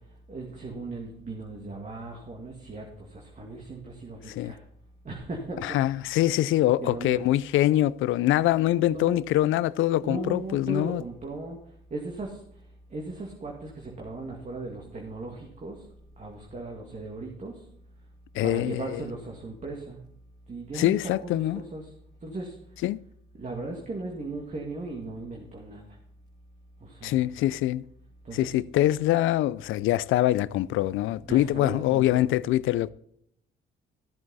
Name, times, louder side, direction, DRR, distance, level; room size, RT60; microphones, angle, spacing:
voice 1, 0.3-2.9 3.1-4.6 5.1-6.0 6.8-7.2 8.8-9.2 10.0-11.6 11.9-12.4 12.9-15.8 16.2-17.5 18.4-20.0 20.5-21.0 21.2-21.9 22.2-22.5 23.4-25.8 26.9-27.3 28.3-28.6 31.2-32.2, right 2 dB, 35° right, 2.2 m, -37 dB
voice 2, 5.6-11.0 18.3-19.0 20.7-21.6 22.8-23.0 27.0-27.8 28.3-32.9, left 14 dB, 85° left, 0.4 m, -24 dB
14.0 x 7.8 x 4.1 m
cardioid pair, 90°, 20 cm